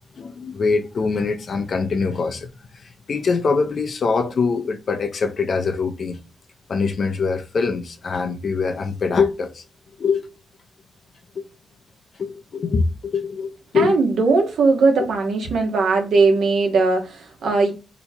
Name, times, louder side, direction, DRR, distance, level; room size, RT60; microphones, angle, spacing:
voice 1, 0.2-2.5 2.8-6.2 6.7-9.6 10.0-10.2 11.4-11.5 12.2-14.0, left 4 dB, 60° left, 0.6 m, -23 dB
voice 2, 13.7-17.7, right 3 dB, 85° right, 1.1 m, -19 dB
3.0 x 2.3 x 4.1 m
cardioid pair, 80°, 0 cm